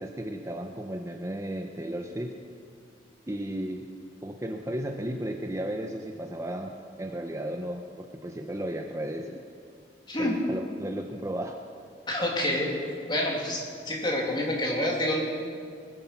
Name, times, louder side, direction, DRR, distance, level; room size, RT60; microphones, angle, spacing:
voice 1, 0.0-2.3 3.3-3.9 4.2-6.7 7.0-9.4 10.2-11.6, right 1 dB, 15° right, 4 dB, 0.7 m, -34 dB
voice 2, 10.1-10.4 12.1-12.7 13.1-15.2, left 1 dB, 25° left, -2 dB, 2.8 m, -28 dB
20.5 x 10.0 x 5.8 m, 2.2 s
head